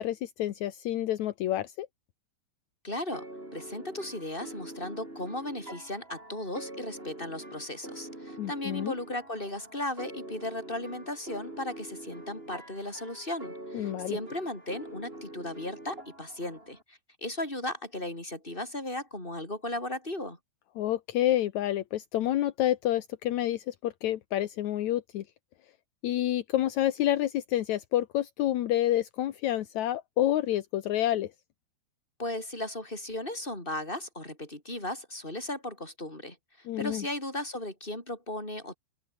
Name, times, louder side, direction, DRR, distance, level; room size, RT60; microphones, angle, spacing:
voice 1, 0.0-1.9 8.4-8.9 13.7-14.2 20.8-25.2 26.0-31.3 36.7-37.1, left 13 dB, 70° left, 1.8 m, -28 dB
voice 2, 2.8-3.3 3.5-20.4 32.2-38.8, left 1 dB, 10° left, 7.7 m, -36 dB
sound 1, 3.1-16.8, right 1 dB, 15° right, 7.7 m, -45 dB
open air
omnidirectional pair, 4.7 m